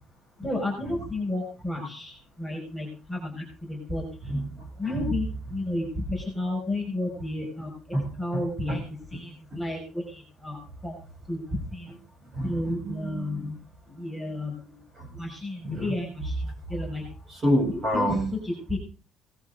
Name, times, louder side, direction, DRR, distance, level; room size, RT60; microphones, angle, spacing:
voice 1, 0.4-4.0 4.8-7.7 8.2-8.8 9.1-11.0 11.3-11.4 11.7-11.9 12.4-13.6 13.9-14.8 15.1-17.0 17.7-18.2 18.5-18.8, left 1 dB, ahead, 0 dB, 6.3 m, -32 dB
voice 2, 4.2-5.1 7.9-8.1 8.3-8.4 8.7-8.8 9.1-9.2 9.5-9.6 12.3-13.5 14.9-15.1 15.6-16.0 17.3-18.3, equal, 25° right, 3 dB, 7.9 m, -29 dB
19.5 x 13.5 x 3.9 m, 0.34 s
cardioid pair, 165°, 0 cm